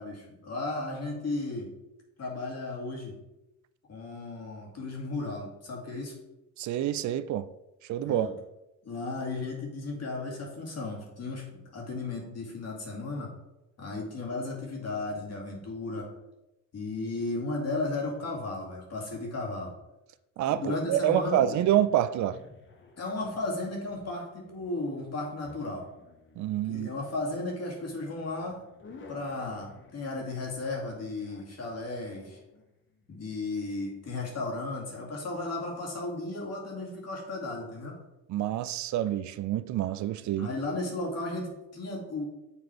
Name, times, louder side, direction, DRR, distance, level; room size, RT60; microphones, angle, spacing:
voice 1, 0.0-1.7 2.2-3.1 3.9-6.2 8.0-8.3 8.8-13.3 13.8-16.1 16.7-19.7 20.5-21.4 23.0-25.9 26.7-28.6 29.1-32.4 33.1-38.0 40.4-42.2, left 2 dB, 55° left, -1 dB, 2.3 m, -35 dB
voice 2, 6.6-7.5 7.9-8.4 20.4-22.4 26.4-26.9 38.3-40.5, right 11 dB, 70° right, 14 dB, 0.5 m, -27 dB
sound 1, 20.9-33.6, left 4 dB, 40° left, 1.1 m, -54 dB
7.2 x 3.9 x 4.4 m, 0.93 s
cardioid pair, 90°, 30 cm